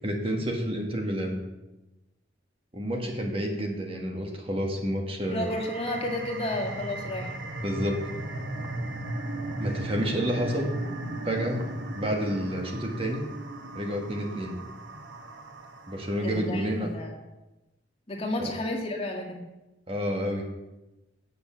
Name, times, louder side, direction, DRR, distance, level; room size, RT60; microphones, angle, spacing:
voice 1, 0.0-1.4 2.7-5.5 7.6-8.0 9.6-10.7 11.2-11.6 11.9-13.2 13.7-14.6 15.9-16.9 18.4-18.5 19.9-20.5, equal, 30° right, 2 dB, 1.3 m, -29 dB
sound 1, 5.2-16.4, right 1 dB, 85° right, 1.2 m, -36 dB
voice 2, 5.3-7.3 16.2-17.1 18.1-19.4, left 1 dB, 35° left, 0 dB, 2.0 m, -32 dB
8.1 x 6.7 x 7.2 m, 1.0 s
head